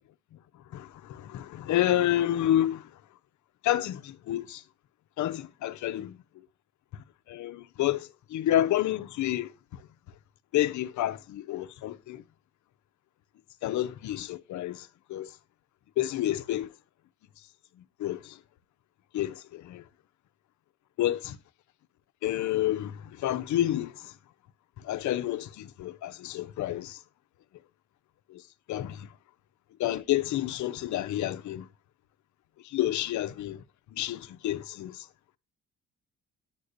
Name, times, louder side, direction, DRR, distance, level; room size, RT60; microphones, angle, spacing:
voice 1, 0.7-2.8 3.6-4.6 5.2-6.2 7.3-9.5 10.5-12.2 13.6-15.3 16.0-16.7 18.0-18.3 19.1-19.8 21.0-21.4 22.2-23.9 24.8-27.0 28.3-28.4 28.7-29.1 29.8-31.7 32.7-33.6 33.9-35.0, left 13 dB, 75° left, 0.7 m, -29 dB
8.9 x 6.4 x 2.5 m
cardioid pair, 90°, 30 cm